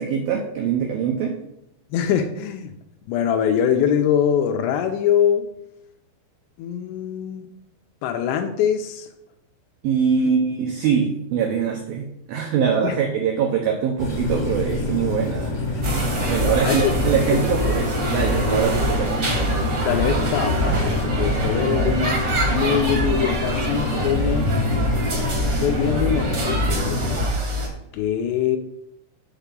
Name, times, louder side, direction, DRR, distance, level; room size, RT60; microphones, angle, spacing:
voice 1, 0.0-1.3 9.8-19.3, right 7 dB, 90° right, 2 dB, 2.1 m, -23 dB
voice 2, 1.9-2.7 3.1-5.5 6.6-7.4 8.0-9.1 10.2-10.3 12.8-13.0 16.4-16.9 19.8-24.5 25.6-27.0 27.9-28.6, left 8 dB, 80° left, 6 dB, 2.6 m, -23 dB
sound 1, 14.0-27.2, left 2 dB, 50° left, 1.2 m, -26 dB
sound 2, 15.8-27.7, right 1 dB, 60° right, 1.2 m, -25 dB
7.3 x 7.1 x 5.2 m, 0.81 s
omnidirectional pair, 5.4 m